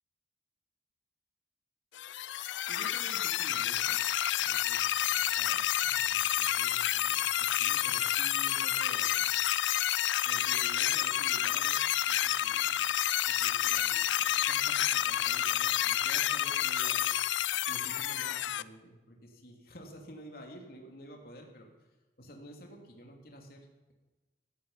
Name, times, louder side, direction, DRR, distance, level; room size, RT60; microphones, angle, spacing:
sound 1, 2.0-18.6, left 12 dB, 90° left, 0.5 m, -29 dB
voice 1, 2.7-9.3 10.2-11.8 12.1-12.9 13.2-17.1 17.3-21.7 22.2-23.9, equal, 55° left, 1 dB, 3.0 m, -51 dB
16.0 x 14.0 x 5.7 m, 1.1 s
head